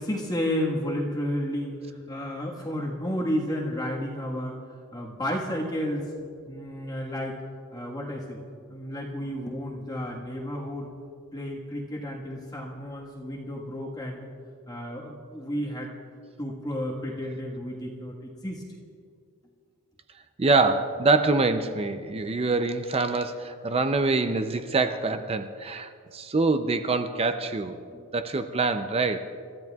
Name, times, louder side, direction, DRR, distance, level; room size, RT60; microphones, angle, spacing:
voice 1, 0.0-1.8 2.1-4.5 4.9-6.0 6.5-7.4 7.7-8.4 8.7-10.9 11.3-14.3 14.7-15.9 16.4-18.1 18.4-18.6 27.9-28.0, equal, 20° left, -3 dB, 1.5 m, -31 dB
voice 2, 20.4-27.8 28.1-29.3, right 3 dB, 25° right, 8 dB, 0.5 m, -25 dB
28.0 x 13.5 x 2.3 m, 2.3 s
head